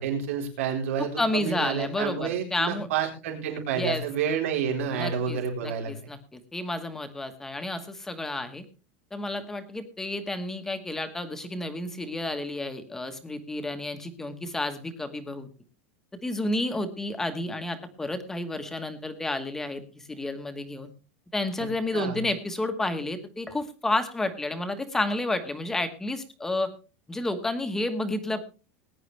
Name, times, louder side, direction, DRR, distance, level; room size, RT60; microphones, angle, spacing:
voice 1, 0.0-5.9 21.9-22.2, right 7 dB, 85° right, 1 dB, 4.1 m, -29 dB
voice 2, 1.0-2.9 3.7-4.0 4.9-8.6 9.1-15.5 16.2-19.8 20.1-20.9 21.3-26.7 27.1-28.4, left 2 dB, 5° left, 7 dB, 1.3 m, -31 dB
20.0 x 10.5 x 3.3 m, 0.35 s
supercardioid pair, 180°, 7 cm